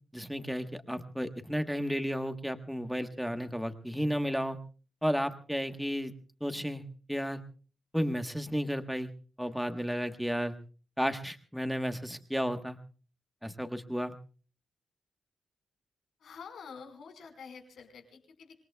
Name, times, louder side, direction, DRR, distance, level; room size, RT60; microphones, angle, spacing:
voice 1, 0.1-4.6 5.0-6.1 6.4-6.8 7.1-7.4 7.9-9.1 9.4-10.5 11.0-12.8 13.4-14.2, equal, ahead, 7 dB, 1.2 m, -33 dB
voice 2, 16.2-18.6, left 6 dB, 90° left, 5 dB, 4.6 m, -48 dB
26.0 x 21.5 x 2.3 m, 0.38 s
wide cardioid pair, 170°, 0 cm